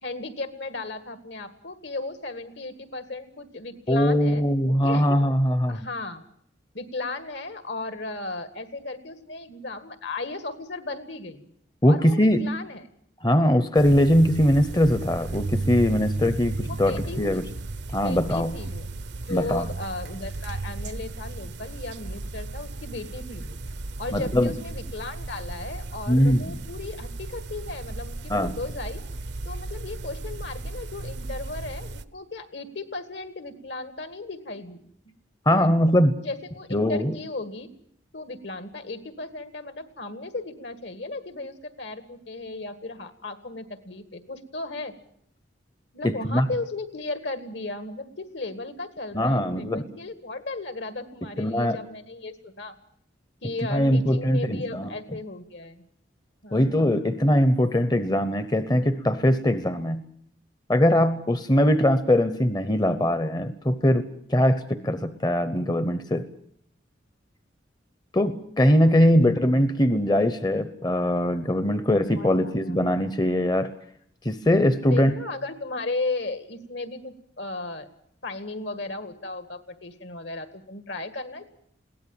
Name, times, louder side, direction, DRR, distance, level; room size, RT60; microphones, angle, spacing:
voice 1, 0.0-5.1 5.7-6.2 6.7-11.5 11.9-12.8 16.7-17.4 18.0-18.9 19.3-23.6 24.0-29.0 29.5-34.8 35.6-35.7 36.2-37.7 38.1-44.9 45.9-52.8 53.4-55.9 56.4-56.9 69.2-69.3 72.2-72.8 74.8-77.9 78.2-81.5, left 2 dB, 65° left, 10 dB, 2.0 m, -35 dB
voice 2, 3.9-5.8 11.8-12.5 13.2-17.4 17.9-18.5 19.3-19.6 24.1-24.5 26.1-26.4 28.3-28.5 35.5-36.2 36.7-37.1 46.0-46.5 49.1-49.8 51.4-51.8 53.7-54.9 56.5-60.0 60.7-66.3 68.1-73.7 74.2-75.1, equal, 20° left, 11 dB, 0.8 m, -21 dB
sound 1, 13.8-32.0, right 2 dB, 65° right, 0.8 m, -35 dB
22.0 x 17.0 x 8.9 m, 0.68 s
head